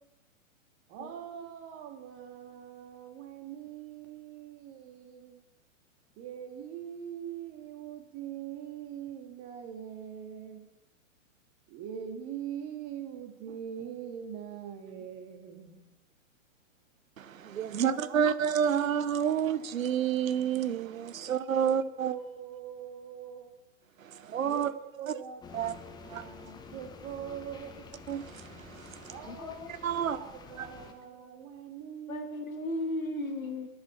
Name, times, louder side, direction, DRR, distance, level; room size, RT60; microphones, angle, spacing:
voice 1, 0.9-5.4 6.2-10.7 11.7-15.8 17.7-18.2 18.8-18.9 19.2-19.3 21.1-21.3 21.6-21.7 22.0-23.5 24.5-25.7 26.0-27.9 29.1-29.6 30.0-32.3, right 9 dB, 35° right, 2.0 m, -42 dB
voice 2, 17.2-22.1 24.0-24.7 25.1-25.2 25.5-25.8 26.1-26.3 28.1-29.1 29.7-30.2 30.6-30.7, right 8 dB, 75° right, 0.8 m, -29 dB
sound 1, 25.4-30.9, left 4 dB, 10° left, 0.8 m, -49 dB
voice 3, 29.3-29.8 31.3-31.4 32.1-33.7, left 1 dB, 80° left, 2.0 m, -36 dB
10.5 x 9.5 x 5.8 m
figure-of-eight pair, 115°, 41 cm